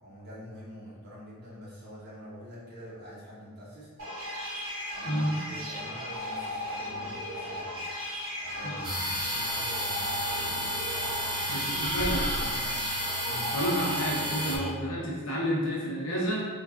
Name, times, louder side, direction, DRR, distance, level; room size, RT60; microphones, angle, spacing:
voice 1, 0.0-3.9 4.9-7.8 8.4-10.8 12.1-12.7 13.2-13.5, equal, 45° right, -8 dB, 1.0 m, -46 dB
sound 1, 4.0-14.7, left 1 dB, 70° right, 1.2 m, -36 dB
voice 2, 5.1-5.4 8.6-8.8 11.5-12.3 13.5-16.5, equal, 65° left, -6 dB, 0.8 m, -30 dB
sound 2, 8.8-14.6, equal, 20° right, 0.3 m, -32 dB
3.3 x 2.4 x 2.4 m, 1.5 s
head